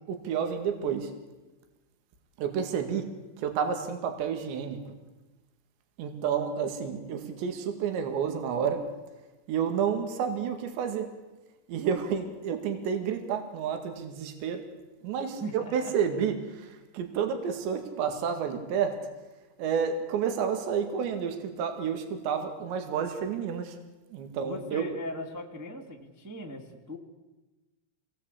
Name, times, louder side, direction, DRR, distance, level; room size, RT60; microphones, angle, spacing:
voice 1, 0.1-1.1 2.4-3.1 3.4-4.8 6.0-8.8 9.5-11.1 11.7-14.6 15.0-18.9 19.6-23.8 24.1-24.9, right 7 dB, 75° right, 6 dB, 4.3 m, -30 dB
voice 2, 15.4-15.9 24.4-27.0, equal, 20° right, 1 dB, 0.4 m, -39 dB
26.5 x 19.5 x 8.4 m, 1.1 s
omnidirectional pair, 5.3 m